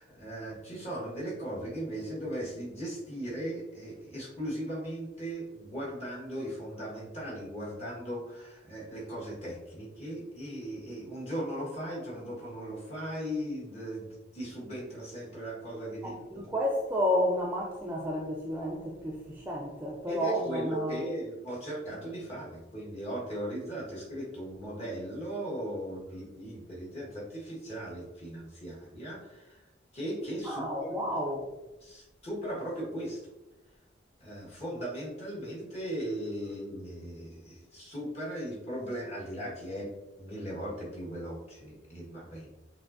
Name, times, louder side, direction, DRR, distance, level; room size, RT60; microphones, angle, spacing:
voice 1, 0.0-16.5 20.1-29.6 29.9-31.0 31.8-33.2 34.2-42.5, right 1 dB, 35° left, 1.4 m, -38 dB
voice 2, 16.0-21.0 30.4-31.5, equal, 10° right, 0.4 m, -31 dB
5.6 x 3.2 x 2.6 m
head